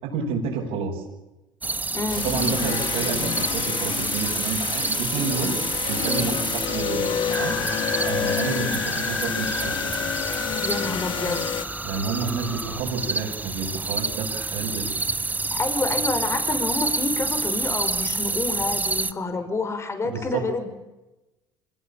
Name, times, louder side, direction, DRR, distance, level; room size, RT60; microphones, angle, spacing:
voice 1, 0.0-1.0 2.2-5.5 5.8-7.6 8.0-9.8 11.8-15.0 20.0-20.7, right 5 dB, 70° right, -5 dB, 6.9 m, -29 dB
sound 1, 1.6-19.1, right 3 dB, 15° right, 1.5 m, -29 dB
voice 2, 1.9-2.3 10.6-11.6 15.5-20.7, left 3 dB, 25° left, 9 dB, 5.7 m, -28 dB
sound 2, 2.1-11.6, left 10 dB, 55° left, 1.4 m, -29 dB
sound 3, 7.3-12.8, left 1 dB, 10° left, 2.4 m, -33 dB
26.5 x 20.5 x 8.8 m, 1.0 s
supercardioid pair, 85°, 10 cm